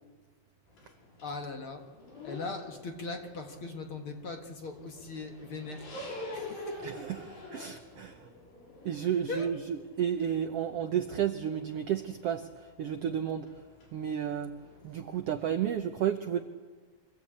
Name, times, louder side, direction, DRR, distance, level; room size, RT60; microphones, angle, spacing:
sound 1, 0.7-15.9, left 2 dB, 85° left, 6.8 m, -48 dB
voice 1, 1.2-1.9 2.2-7.1 9.3-9.5, left 3 dB, 50° left, 4 dB, 1.9 m, -40 dB
voice 2, 6.8-8.3 8.8-13.5 13.9-16.4, right 9 dB, 90° right, 6 dB, 1.3 m, -32 dB
24.5 x 16.5 x 8.7 m, 1.4 s
omnidirectional pair, 4.0 m